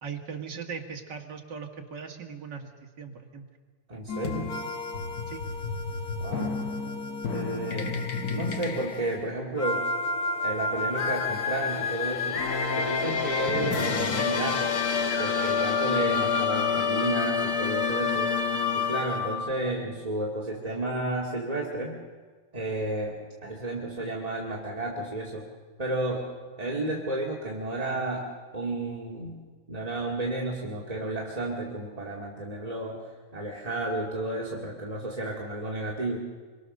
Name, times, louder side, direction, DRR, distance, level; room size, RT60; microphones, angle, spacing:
voice 1, 0.0-3.5 5.3-5.4, right 6 dB, 40° right, 2 dB, 2.2 m, -39 dB
voice 2, 3.9-4.6 6.2-6.5 7.3-7.9 8.3-9.9 10.4-12.4 12.8-14.7 15.2-18.4 18.7-22.0 22.5-25.5 25.8-29.4 29.7-33.0 33.3-36.2, right 2 dB, 15° right, -4 dB, 1.5 m, -32 dB
sound 1, 4.1-19.5, left 5 dB, 60° left, 0.9 m, -28 dB
25.5 x 23.0 x 6.6 m, 1.5 s
omnidirectional pair, 3.5 m